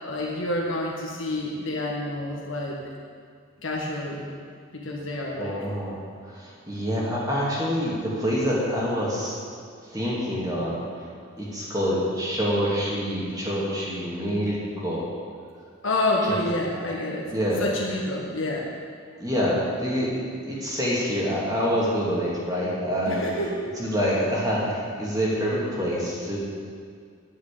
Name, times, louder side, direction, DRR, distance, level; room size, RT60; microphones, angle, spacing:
voice 1, 0.0-2.8 3.6-4.3 4.7-5.5 15.8-17.3 17.6-18.7 23.1-23.6, left 1 dB, 65° left, -2 dB, 1.6 m, -28 dB
voice 2, 5.4-6.0 6.2-9.3 9.8-10.8 11.4-15.1 17.3-17.6 19.2-23.3 23.8-26.4, equal, 15° right, -6 dB, 2.4 m, -26 dB
10.5 x 7.5 x 8.4 m, 2.1 s
head